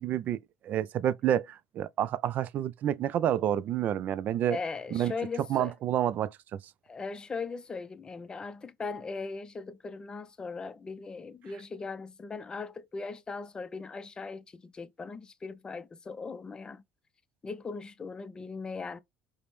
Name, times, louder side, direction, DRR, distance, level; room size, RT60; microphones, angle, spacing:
voice 1, 0.0-4.6 4.9-5.1 5.5-6.3, right 11 dB, 50° right, 0.3 m, -29 dB
voice 2, 4.5-5.7 6.9-16.8 17.4-19.0, left 4 dB, 25° left, 0.5 m, -39 dB
5.0 x 2.1 x 3.0 m
supercardioid pair, 100°, 4 cm